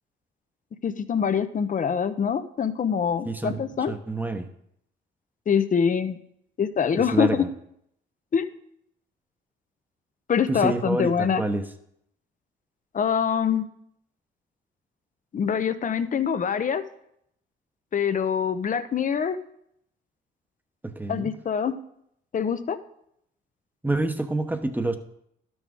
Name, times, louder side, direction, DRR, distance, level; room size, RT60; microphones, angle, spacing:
voice 1, 0.8-3.9 5.5-6.2 6.6-7.4 8.3-8.5 10.3-11.4 12.9-13.7 15.3-16.8 17.9-19.4 21.1-21.8 22.3-22.8, left 7 dB, 40° left, 12 dB, 0.7 m, -24 dB
voice 2, 3.2-3.6 3.9-4.5 6.9-7.5 10.5-11.6 20.8-21.3 23.8-25.0, right 2 dB, 10° right, 7 dB, 0.9 m, -27 dB
12.0 x 6.2 x 3.6 m, 0.73 s
cardioid pair, 90°, 20 cm